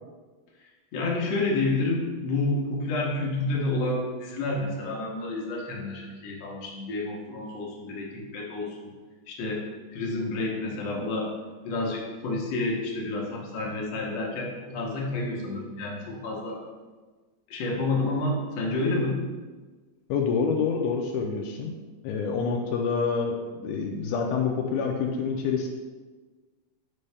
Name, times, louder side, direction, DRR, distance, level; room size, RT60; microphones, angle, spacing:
voice 1, 0.9-8.9 9.3-9.6 9.9-11.3 11.6-16.6 17.5-19.2, left 2 dB, 65° left, -2 dB, 1.9 m, -29 dB
voice 2, 20.1-21.8 22.0-25.7, left 5 dB, 80° left, 1 dB, 2.0 m, -27 dB
5.4 x 5.4 x 3.3 m, 1.3 s
omnidirectional pair, 3.6 m